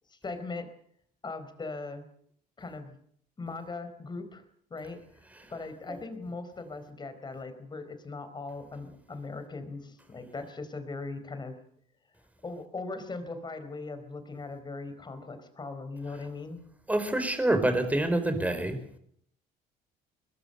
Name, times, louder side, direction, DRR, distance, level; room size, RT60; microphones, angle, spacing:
voice 1, 0.1-0.7 1.2-2.1 2.6-3.0 3.4-4.4 4.7-5.0 5.5-11.6 12.4-16.6, left 3 dB, 25° left, 10 dB, 4.5 m, -39 dB
voice 2, 16.9-18.8, right 1 dB, 10° right, 8 dB, 4.5 m, -26 dB
22.5 x 21.0 x 6.8 m, 0.65 s
cardioid pair, 110°, 17 cm